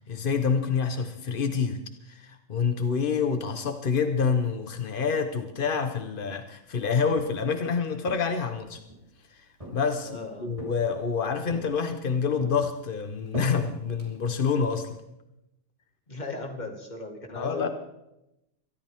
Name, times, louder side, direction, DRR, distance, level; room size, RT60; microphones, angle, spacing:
voice 1, 0.1-1.8 2.1-8.8 9.3-10.1 10.4-15.0 17.3-17.7, left 5 dB, 55° left, 7 dB, 0.5 m, -27 dB
Walk footsteps, 6.9-7.6 8.0-9.1 9.6-10.2 10.6-11.1 11.5-12.1 12.4-14.6, right 1 dB, 15° right, 3.5 m, -42 dB
voice 2, 10.0-10.5 16.1-17.7, left 3 dB, 20° left, 3 dB, 2.0 m, -37 dB
23.0 x 13.5 x 3.6 m, 0.88 s
omnidirectional pair, 2.3 m